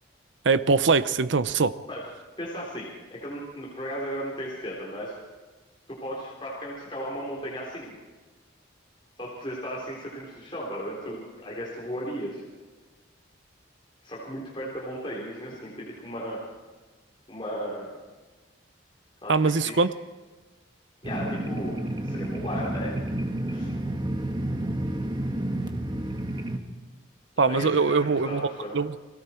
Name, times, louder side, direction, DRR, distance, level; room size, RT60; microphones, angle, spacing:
voice 1, 0.4-1.8 19.3-19.9 27.4-28.5 28.7-29.0, right 4 dB, 75° right, 0.7 m, -22 dB
voice 2, 2.4-5.2 5.9-8.0 9.2-12.4 14.0-16.4 17.3-17.9 19.2-19.8 21.0-23.2 23.5-23.7 27.5-28.8, equal, 25° left, 3.7 m, -35 dB
sound 1, 21.0-26.6, right 1 dB, 25° right, 1.3 m, -30 dB
29.5 x 21.0 x 4.5 m
head